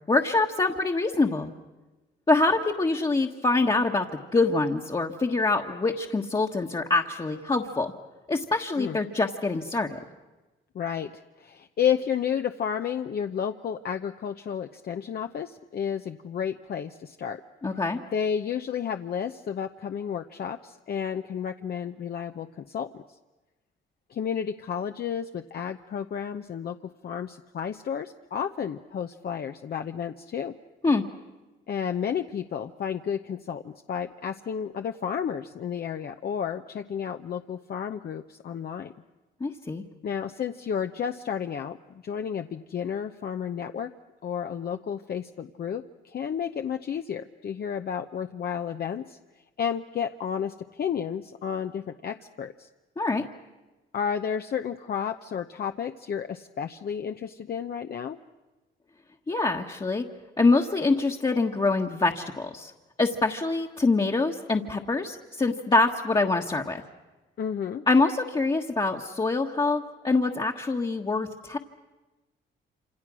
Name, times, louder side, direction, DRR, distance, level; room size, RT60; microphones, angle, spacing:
voice 1, 0.1-1.5 2.3-4.0 4.3-7.9 8.3-10.0 17.6-18.0 30.8-31.0 39.4-39.8 53.0-53.2 59.3-60.1 60.4-62.7 63.0-66.8 67.9-71.6, left 3 dB, 25° left, 0 dB, 1.4 m, -25 dB
voice 2, 10.7-17.4 18.1-23.2 24.1-30.6 31.7-38.9 40.0-43.9 44.2-49.2 49.6-52.7 53.9-58.2 67.4-67.8, left 8 dB, 50° left, 6 dB, 0.9 m, -32 dB
27.0 x 27.0 x 6.3 m, 1.2 s
cardioid pair, 90°, 20 cm